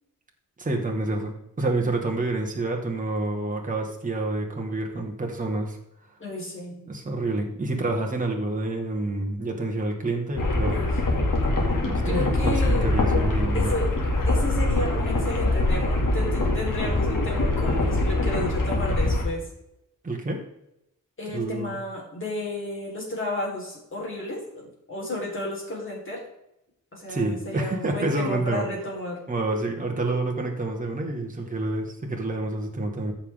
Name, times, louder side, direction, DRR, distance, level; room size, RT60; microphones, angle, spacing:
voice 1, 0.6-5.8 6.9-10.8 11.8-13.7 20.0-20.4 21.3-21.8 27.1-28.7 29.3-33.1, right 2 dB, 25° right, 1 dB, 1.6 m, -28 dB
voice 2, 6.2-6.9 10.6-11.0 12.0-12.9 13.5-13.9 14.2-19.4 21.2-26.2 26.9-29.2, left 1 dB, 40° left, -3 dB, 4.0 m, -32 dB
sound 1, 10.4-19.2, left 2 dB, 75° left, 2.5 m, -23 dB
14.0 x 5.9 x 3.6 m, 0.83 s
wide cardioid pair, 145°, 32 cm